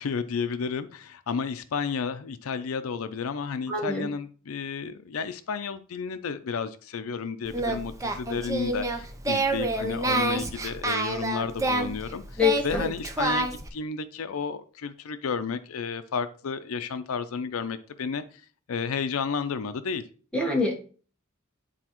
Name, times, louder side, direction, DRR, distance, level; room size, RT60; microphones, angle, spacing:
voice 1, 0.0-18.4 18.7-20.0, left 5 dB, 80° left, 0.5 m, -32 dB
voice 2, 3.7-4.1 12.4-12.8 20.3-20.8, left 4 dB, 5° left, 1.2 m, -25 dB
Singing, 7.4-13.7, right 2 dB, 15° right, 0.6 m, -28 dB
9.9 x 4.1 x 3.0 m
head